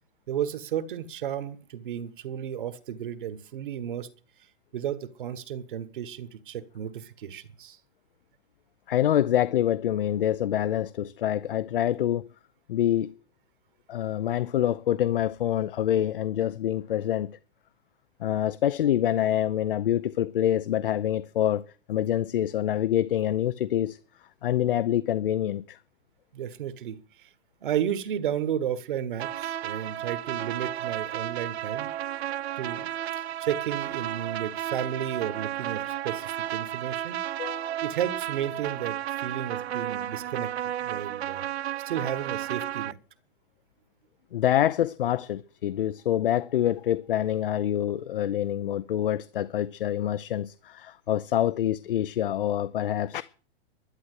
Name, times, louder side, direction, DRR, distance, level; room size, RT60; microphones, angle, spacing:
voice 1, 0.3-4.1 4.7-7.8 26.3-27.3 27.6-31.9 32.6-32.9 33.4-37.2 37.8-40.5 40.8-41.4 41.8-43.0, right 10 dB, 50° right, 1.5 m, -33 dB
voice 2, 8.9-12.3 12.7-13.1 13.9-17.3 18.2-21.6 21.9-24.0 24.4-25.8 37.4-37.8 44.3-53.2, left 11 dB, 55° left, 0.6 m, -26 dB
sound 1, 29.2-42.9, right 11 dB, 75° right, 0.8 m, -33 dB
11.5 x 10.5 x 8.1 m
hypercardioid pair, 175°, 33 cm